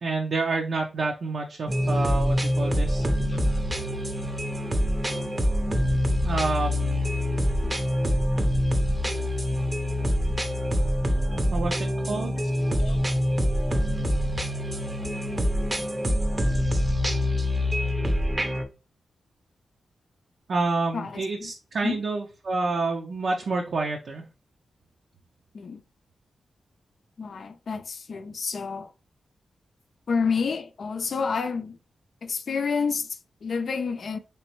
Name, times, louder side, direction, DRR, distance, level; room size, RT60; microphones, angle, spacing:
voice 1, 0.0-3.1 6.2-7.1 11.5-12.3 20.5-24.2, right 3 dB, 70° right, 0.5 m, -28 dB
sound 1, 1.7-18.6, equal, 25° right, 0.6 m, -25 dB
voice 2, 3.0-3.4 12.7-13.0 20.9-21.5 21.8-22.0 25.5-25.8 27.2-28.9 30.1-31.8 32.2-34.2, left 5 dB, 65° left, 0.4 m, -29 dB
3.2 x 3.0 x 3.0 m
cardioid pair, 65°, 0 cm